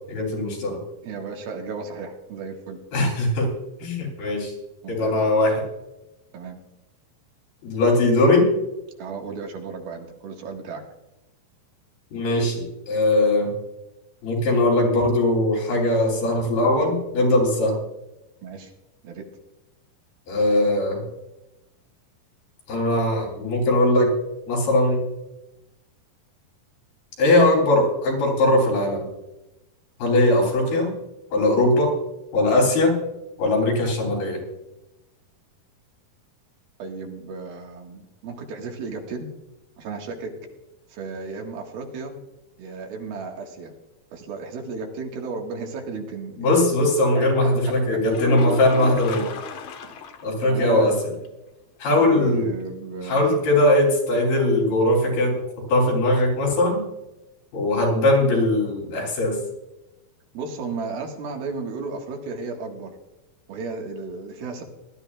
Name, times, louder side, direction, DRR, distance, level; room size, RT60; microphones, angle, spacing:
voice 1, 0.1-0.8 2.9-3.5 3.8-4.5 4.9-5.7 7.6-8.5 12.1-13.5 14.2-17.8 20.3-21.0 22.7-24.1 24.5-25.1 27.2-29.1 30.0-30.9 31.3-31.9 32.3-33.0 33.4-34.4 46.4-49.3 50.2-51.0 51.8-52.5 53.0-56.8 57.5-59.4, left 1 dB, 85° left, -1 dB, 5.6 m, -20 dB
voice 2, 1.0-2.8 4.8-5.2 6.3-6.6 9.0-10.8 18.4-18.7 19.0-19.3 36.8-39.3 39.8-40.3 40.9-42.2 42.6-43.7 44.1-46.5 47.1-47.7 49.8-50.0 50.4-51.0 52.0-53.4 60.3-63.0 63.5-64.6, right 4 dB, 90° right, 1 dB, 3.6 m, -34 dB
sound 1, 48.1-50.3 50.7-50.8 51.2-51.3 55.1-55.2, left 7 dB, 65° left, 1.9 m, -32 dB
20.0 x 12.5 x 2.4 m, 0.97 s
omnidirectional pair, 4.2 m